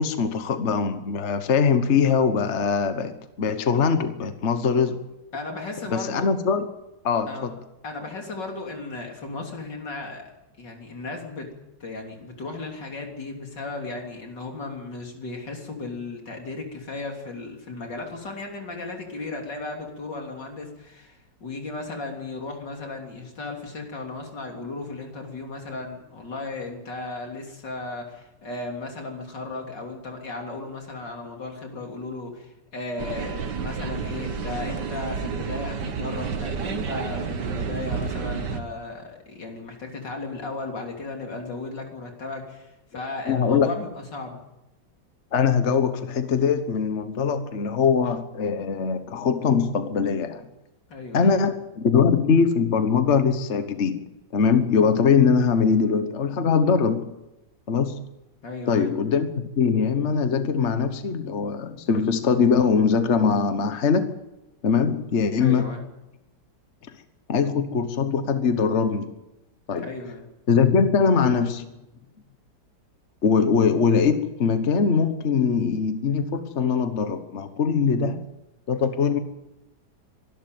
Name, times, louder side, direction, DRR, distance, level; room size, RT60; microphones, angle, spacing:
voice 1, 0.0-5.0 5.9-6.7 7.0-7.6 43.2-43.7 45.3-50.4 51.1-54.0 54.3-57.1 57.7-58.0 58.7-64.1 64.6-65.6 67.3-69.1 69.7-69.9 70.5-71.7 73.2-78.2 78.7-79.2, left 6 dB, 45° left, 9 dB, 1.4 m, -22 dB
voice 2, 5.3-6.3 7.3-7.5 7.8-10.2 10.6-11.5 11.8-44.4 50.9-51.4 58.4-58.9 65.4-65.8 69.7-70.3, left 3 dB, 85° left, 2 dB, 3.9 m, -35 dB
sound 1, 33.0-38.6, right 6 dB, 75° right, 2.0 m, -30 dB
24.5 x 12.5 x 9.3 m, 0.96 s
omnidirectional pair, 1.9 m